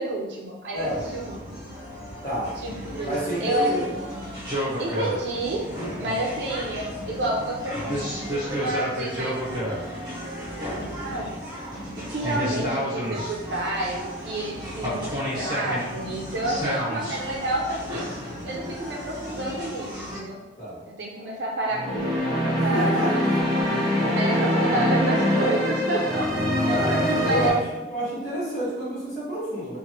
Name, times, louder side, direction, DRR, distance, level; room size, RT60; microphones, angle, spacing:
voice 1, 0.0-1.4 1.6-1.8 2.6-3.8 4.8-5.7 6.0-8.0 8.3-9.8 10.8-11.3 12.0-18.1 18.4-20.4 21.0-23.4 24.2-26.3 26.6-26.8 27.2-27.6, right 1 dB, 80° right, -2 dB, 0.5 m, -29 dB
sound 1, 0.7-20.2, equal, 25° right, 0.9 m, -32 dB
voice 2, 2.2-2.6 3.0-3.9 6.0-6.3 20.6-20.8 22.6-23.1 26.7-27.6 27.9-29.8, right 1 dB, 45° left, -11 dB, 1.4 m, -28 dB
sound 2, 21.7-27.5, equal, 5° left, 1.1 m, -23 dB
3.0 x 2.5 x 2.8 m, 1.1 s
head